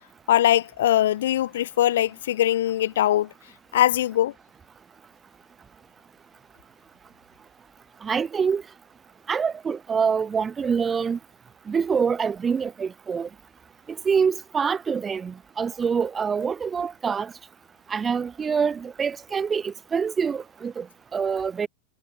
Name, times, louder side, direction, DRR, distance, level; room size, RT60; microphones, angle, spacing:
voice 1, 0.3-3.3 3.7-4.3, left 12 dB, 60° left, 6.0 m, -21 dB
voice 2, 8.0-8.6 9.3-11.2 11.7-13.3 14.0-17.3 17.9-20.9 21.1-21.7, right 6 dB, 20° right, 4.3 m, -25 dB
figure-of-eight pair, 90°, 0 cm